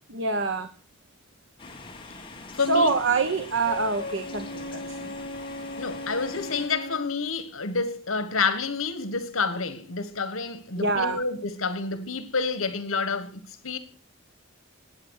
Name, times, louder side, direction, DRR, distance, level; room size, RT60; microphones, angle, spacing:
voice 1, 0.1-0.7 2.7-5.1 10.8-11.2, right 3 dB, 65° right, 1.3 m, -25 dB
sound 1, 1.6-6.7, left 3 dB, 25° left, 2.1 m, -44 dB
voice 2, 2.5-3.0 5.8-13.8, left 4 dB, 80° left, 1.6 m, -29 dB
Wind instrument woodwind instrument, 3.6-7.2, left 1 dB, 50° left, 1.7 m, -37 dB
19.5 x 8.8 x 6.6 m
head